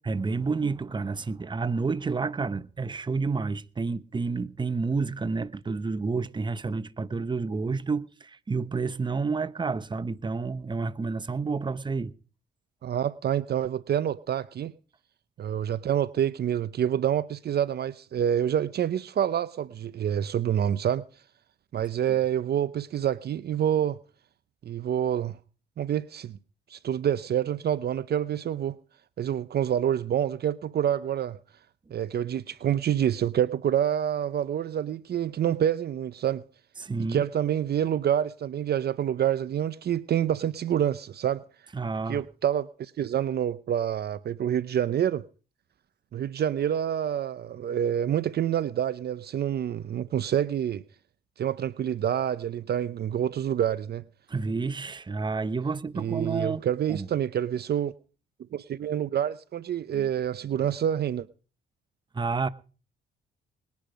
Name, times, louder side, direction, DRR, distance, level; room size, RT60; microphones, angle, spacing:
voice 1, 0.0-12.1 36.8-37.2 41.7-42.2 54.3-56.6 56.9-57.1 62.1-62.5, right 4 dB, 25° right, 0.9 m, -30 dB
voice 2, 12.8-14.7 15.4-21.0 21.7-24.0 24.6-25.4 25.8-26.4 26.7-28.8 29.2-31.4 31.9-36.4 37.1-41.4 42.1-45.2 46.1-50.8 51.4-54.0 55.9-57.9 58.5-61.3, right 10 dB, 55° right, 0.7 m, -27 dB
20.5 x 10.5 x 5.1 m
cardioid pair, 90°, 20 cm